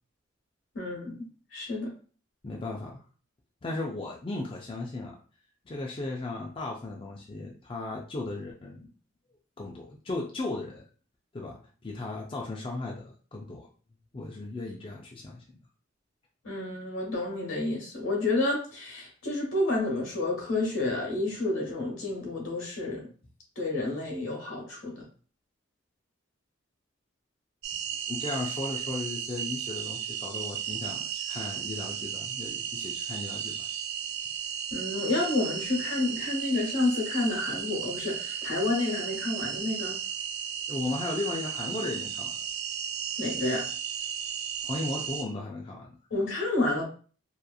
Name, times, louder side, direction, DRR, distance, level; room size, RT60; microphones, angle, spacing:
voice 1, 0.7-1.9 16.4-23.0 23.6-25.1 34.7-40.0 43.2-43.7 46.1-46.8, left 2 dB, 80° left, -1 dB, 1.1 m, -30 dB
voice 2, 2.4-3.0 3.6-5.2 5.7-8.9 9.6-10.8 11.3-13.7 14.1-15.4 28.1-33.7 40.7-42.4 44.6-45.9, left 2 dB, 25° left, -2 dB, 0.4 m, -36 dB
sound 1, 27.6-45.2, right 8 dB, 55° right, 0.3 m, -35 dB
2.9 x 2.4 x 2.2 m, 0.39 s
head